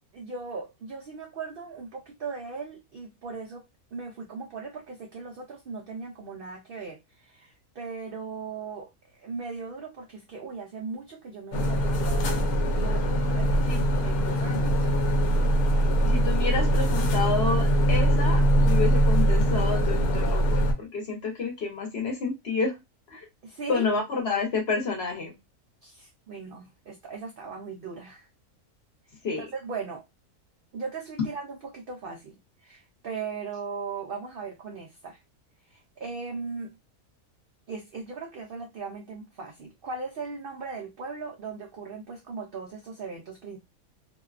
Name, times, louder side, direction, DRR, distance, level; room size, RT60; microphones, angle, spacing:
voice 1, 0.1-12.5 12.8-14.8 23.4-23.9 25.8-28.3 29.4-30.0 30.7-35.2 35.7-36.7 37.7-43.6, right 4 dB, 90° right, 0.4 m, -38 dB
sound 1, 11.5-20.7, right 1 dB, 85° left, 1.1 m, -22 dB
voice 2, 16.0-22.7 23.1-23.2 23.7-25.3 29.2-29.5, left 4 dB, 50° left, 0.9 m, -29 dB
2.6 x 2.2 x 2.3 m
omnidirectional pair, 1.5 m